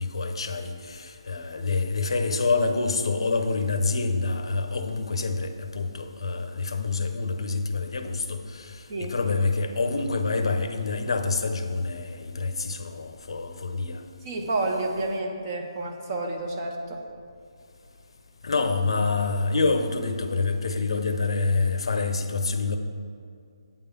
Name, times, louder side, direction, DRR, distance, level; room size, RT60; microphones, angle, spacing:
voice 1, 0.0-14.0 18.4-22.8, left 3 dB, 65° left, 7 dB, 0.7 m, -27 dB
voice 2, 14.2-17.0, right 2 dB, 25° right, 1 dB, 0.6 m, -30 dB
8.8 x 3.8 x 6.8 m, 2.4 s
hypercardioid pair, 175°, 3 cm